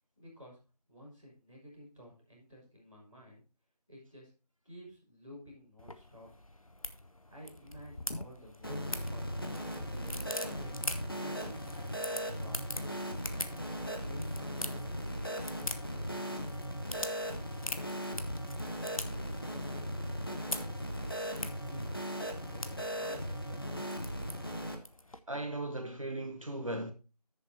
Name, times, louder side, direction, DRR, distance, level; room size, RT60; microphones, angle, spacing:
voice 1, 0.2-0.6 0.9-3.4 3.9-4.3 4.6-6.3 7.3-9.6 9.8-12.7 13.3-13.6 13.9-15.4 16.1-16.5 16.9-17.9 18.6-20.4 20.9-21.9 22.5-23.8, equal, 5° left, 2.1 m, -53 dB
sound 1, 5.8-25.2, left 2 dB, 55° left, 0.8 m, -44 dB
sound 2, 8.6-24.8, equal, 35° left, 1.1 m, -38 dB
sound 3, 9.9-12.4, left 2 dB, 25° right, 3.8 m, -63 dB
voice 2, 25.3-26.9, right 1 dB, 55° right, 0.9 m, -37 dB
14.0 x 6.8 x 2.8 m
figure-of-eight pair, 175°, 20 cm